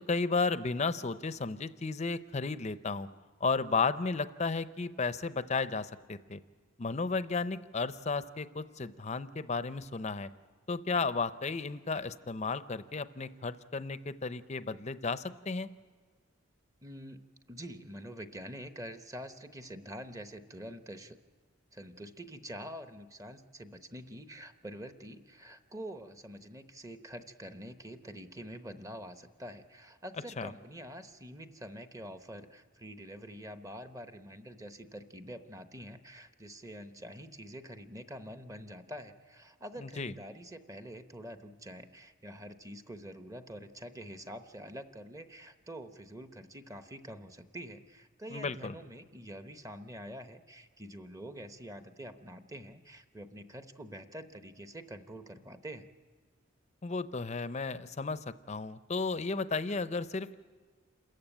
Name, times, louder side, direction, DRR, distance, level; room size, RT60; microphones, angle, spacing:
voice 1, 0.1-3.1 3.4-6.4 6.8-10.3 10.7-15.7 30.4-30.5 39.8-40.1 48.3-48.7 56.8-58.2 58.5-60.3, left 4 dB, 35° left, 13 dB, 0.6 m, -33 dB
voice 2, 16.8-21.2 21.7-55.9, equal, 15° right, 8 dB, 0.9 m, -46 dB
27.5 x 14.5 x 9.0 m, 1.6 s
head